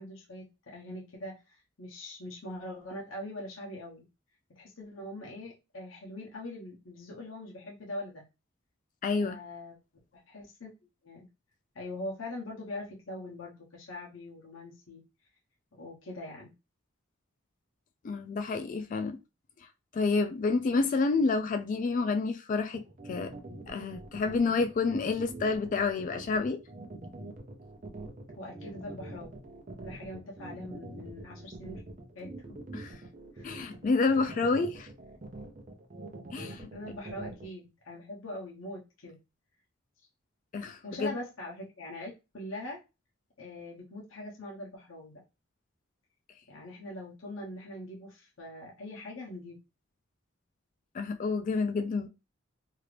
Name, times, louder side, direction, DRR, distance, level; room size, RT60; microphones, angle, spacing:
voice 1, 0.0-4.1 4.5-8.2 9.2-9.8 10.1-10.7 11.0-11.3 11.7-15.0 15.7-16.5 28.4-29.4 29.8-31.8 32.1-32.3 33.3-33.5 36.7-39.2 40.8-42.8 43.4-45.2 46.5-49.6, left 1 dB, 80° left, 1.0 m, -42 dB
voice 2, 9.0-9.4 18.0-19.2 19.9-22.8 23.1-23.3 23.7-26.6 32.7-32.9 33.4-34.9 36.3-36.7 40.5-41.1 50.9-52.1, left 4 dB, 40° left, 0.3 m, -29 dB
sound 1, 22.7-37.5, right 2 dB, 40° right, 0.6 m, -44 dB
2.8 x 2.5 x 3.2 m
head